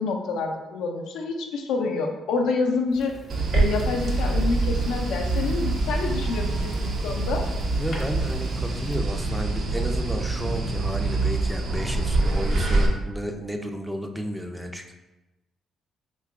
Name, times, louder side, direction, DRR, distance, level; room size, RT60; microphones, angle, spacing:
voice 1, 0.0-3.1 3.5-7.5, left 4 dB, 85° left, 2 dB, 0.4 m, -27 dB
Fire, 2.9-9.0, left 1 dB, 55° left, 0.8 m, -44 dB
sound 1, 3.3-12.9, right 2 dB, 60° right, 0.5 m, -25 dB
voice 2, 7.8-14.9, equal, 5° right, 4 dB, 0.3 m, -32 dB
2.8 x 2.2 x 3.5 m, 1.0 s
cardioid pair, 90°, 0 cm